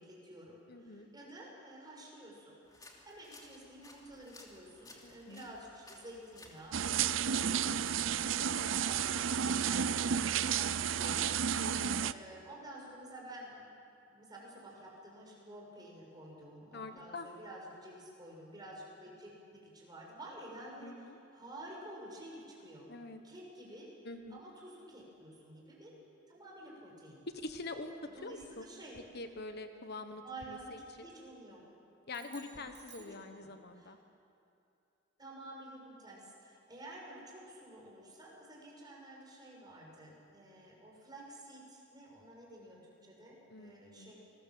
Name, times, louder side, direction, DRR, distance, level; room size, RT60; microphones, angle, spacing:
voice 1, 0.0-11.5 12.0-13.7 14.1-20.9 21.3-22.9 23.2-23.9 24.3-25.9 26.3-27.2 28.1-29.0 30.2-31.6 32.4-32.7 33.1-33.5 33.8-33.9 35.2-44.1, right 1 dB, 20° right, -2 dB, 6.5 m, -51 dB
voice 2, 0.7-1.1 5.0-5.5 8.4-8.7 11.6-12.0 16.7-17.3 20.8-21.2 22.9-23.2 24.0-24.4 27.3-28.7 29.1-31.1 32.1-34.0 43.5-44.1, left 2 dB, 55° left, 7 dB, 1.3 m, -45 dB
sound 1, 2.6-8.2, left 2 dB, 20° left, 3.0 m, -58 dB
sound 2, 6.7-12.1, right 8 dB, 70° right, 0.6 m, -32 dB
sound 3, 32.1-33.9, right 8 dB, 40° right, 3.8 m, -58 dB
29.0 x 20.0 x 7.7 m, 2.6 s
head